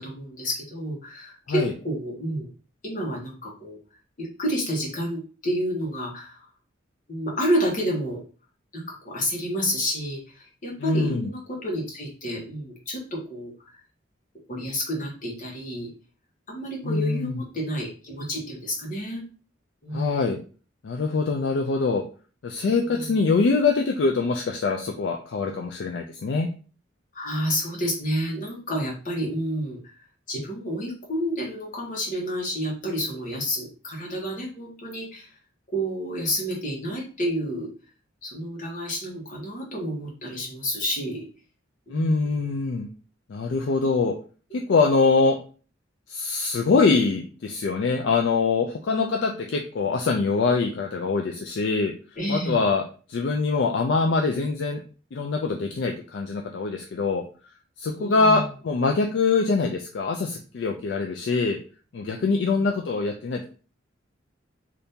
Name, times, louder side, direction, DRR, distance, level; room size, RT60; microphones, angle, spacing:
voice 1, 0.0-2.5 2.8-3.8 4.2-6.4 7.1-8.2 8.7-13.5 14.5-15.9 16.5-19.2 19.8-20.3 22.9-23.1 27.1-29.9 30.3-35.3 35.7-37.7 38.2-41.3 41.9-42.4 44.5-44.6 52.2-52.6 57.9-58.5 62.3-62.6, equal, 40° left, -2 dB, 1.1 m, -30 dB
voice 2, 10.8-11.3 16.8-17.4 19.9-20.4 20.8-22.0 22.4-26.5 41.9-42.9 43.3-44.1 44.5-45.4 46.1-51.9 52.3-52.8 53.1-54.8 55.1-57.2 57.8-61.6 61.9-63.4, left 4 dB, 65° left, 2 dB, 0.3 m, -24 dB
2.7 x 2.6 x 3.5 m, 0.38 s
head